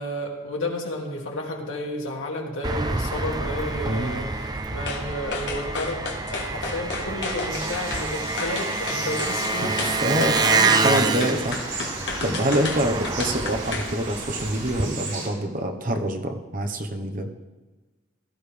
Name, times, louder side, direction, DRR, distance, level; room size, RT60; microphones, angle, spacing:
voice 1, 0.0-6.0 6.3-9.8 10.1-11.1 12.5-12.7, left 1 dB, 90° left, -1 dB, 2.4 m, -31 dB
Engine, 2.6-14.8, right 3 dB, 20° right, 0.5 m, -27 dB
voice 2, 3.8-4.2 9.6-9.7 10.0-10.3 10.8-12.0 12.2-17.3, right 1 dB, 45° right, 5 dB, 1.1 m, -26 dB
sound 1, 4.9-5.0 5.3-8.1 8.4-9.4 9.8-13.9 14.3-14.4, left 4 dB, 60° left, 1.6 m, -32 dB
sound 2, 7.5-15.3, right 4 dB, 80° right, 3.5 m, -36 dB
17.0 x 13.0 x 3.4 m, 1.2 s
head